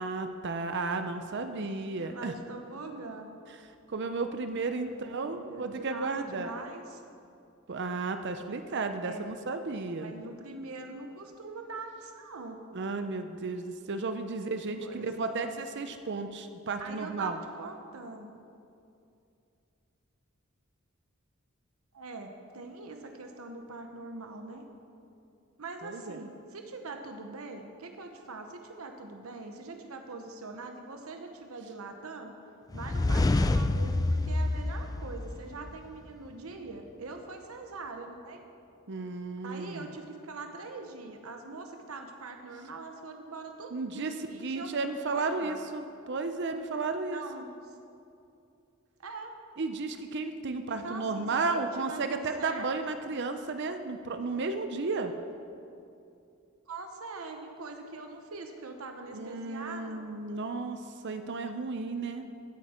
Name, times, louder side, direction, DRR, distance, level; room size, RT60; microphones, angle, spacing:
voice 1, 0.0-2.3 3.9-6.5 7.7-10.1 12.7-17.4 25.8-26.2 38.9-39.9 43.7-47.2 49.6-55.1 59.1-62.3, right 3 dB, 55° right, 8 dB, 0.6 m, -33 dB
voice 2, 2.0-3.3 4.8-7.0 9.0-9.3 10.0-12.6 14.8-15.4 16.8-18.3 21.9-24.7 25.6-32.3 32.7-38.4 39.4-44.7 45.1-45.6 47.1-47.8 49.0-49.3 50.7-52.7 56.7-60.0, right 3 dB, 80° right, 4 dB, 1.0 m, -43 dB
sound 1, 32.7-35.7, left 2 dB, 15° left, 0.3 m, -27 dB
16.0 x 9.3 x 4.4 m, 2.6 s
head